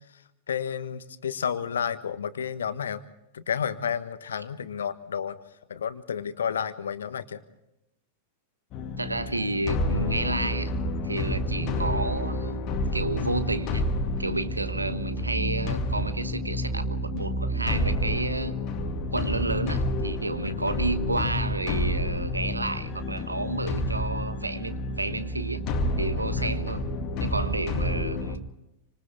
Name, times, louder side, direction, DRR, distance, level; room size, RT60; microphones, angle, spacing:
voice 1, 0.5-3.0 3.3-5.4 5.7-7.4 20.4-20.7 26.3-26.7, left 7 dB, 65° left, 13 dB, 1.3 m, -31 dB
sound 1, 8.7-28.4, left 1 dB, 40° left, 2.0 m, -29 dB
voice 2, 9.0-10.7 11.0-13.8 14.2-18.6 19.1-25.7 26.0-26.9 27.2-28.5, right 2 dB, 80° right, 12 dB, 1.2 m, -31 dB
28.5 x 26.0 x 3.6 m, 0.90 s
figure-of-eight pair, 90°, 0 cm